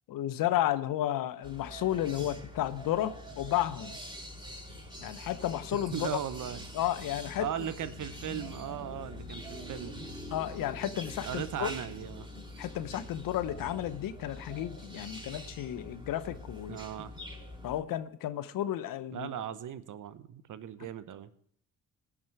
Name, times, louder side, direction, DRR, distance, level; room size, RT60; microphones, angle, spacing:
voice 1, 0.1-4.0 5.0-6.2 6.7-7.5 10.3-11.7 12.6-16.8 17.6-19.3, left 12 dB, 65° left, 0.8 m, -32 dB
sound 1, 1.4-17.8, left 1 dB, 10° right, 5.5 m, -44 dB
voice 2, 5.9-6.7 7.4-10.0 11.2-12.3 16.7-17.1 19.1-21.3, right 10 dB, 55° right, 0.9 m, -38 dB
18.5 x 6.2 x 4.5 m
hypercardioid pair, 50°, 36 cm